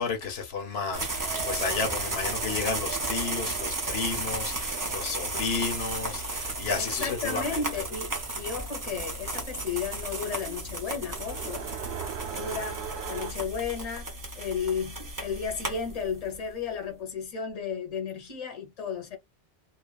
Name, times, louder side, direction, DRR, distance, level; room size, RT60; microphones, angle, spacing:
voice 1, 0.0-7.6, left 5 dB, 80° left, 1.0 m, -32 dB
sound 1, 0.9-16.4, right 2 dB, 25° right, 0.5 m, -34 dB
Race car auto racing, 0.9-13.3, right 9 dB, 90° right, 0.9 m, -42 dB
voice 2, 6.8-8.1 8.4-11.7 12.3-19.2, left 6 dB, 40° left, 0.9 m, -34 dB
2.4 x 2.2 x 2.3 m
omnidirectional pair, 1.0 m